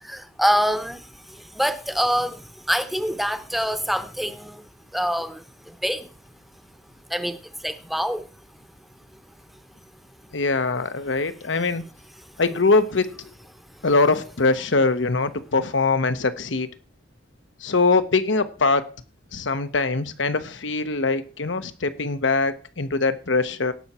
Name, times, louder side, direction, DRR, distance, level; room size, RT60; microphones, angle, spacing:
voice 1, 0.0-4.6 4.9-6.1 7.1-8.3 12.2-12.3, equal, ahead, 0.8 m, -26 dB
voice 2, 10.3-11.8 12.4-13.3 13.8-16.7 17.6-18.9 19.3-23.7, left 3 dB, 80° left, 1.0 m, -22 dB
17.5 x 6.1 x 4.3 m
head